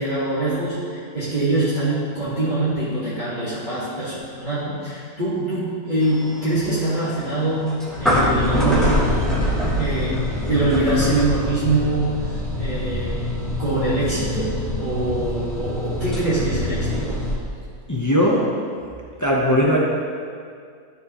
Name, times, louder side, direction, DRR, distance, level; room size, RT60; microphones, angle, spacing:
voice 1, 0.0-8.9 9.8-17.1, right 2 dB, 30° right, -12 dB, 1.6 m, -24 dB
sound 1, 6.0-17.3, left 1 dB, ahead, 1.3 m, -24 dB
voice 2, 17.9-18.5 19.2-19.8, equal, 25° left, -4 dB, 0.3 m, -18 dB
12.5 x 4.4 x 3.0 m, 2.2 s
omnidirectional pair, 1.6 m